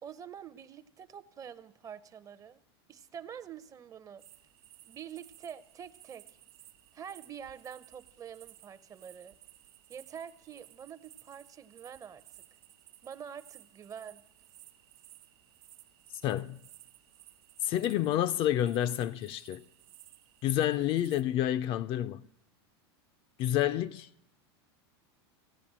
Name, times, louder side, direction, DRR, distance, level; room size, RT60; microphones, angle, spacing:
voice 1, 0.0-2.6 2.9-4.2 4.8-6.2 6.9-9.3 9.9-12.2 13.0-14.2, right 8 dB, 25° right, 0.6 m, -46 dB
sound 1, 4.2-21.2, right 14 dB, 70° right, 1.2 m, -57 dB
voice 2, 16.2-16.6 17.6-19.6 20.4-22.3 23.4-24.1, left 12 dB, 40° left, 0.4 m, -29 dB
16.0 x 8.4 x 7.3 m
supercardioid pair, 125°, 13 cm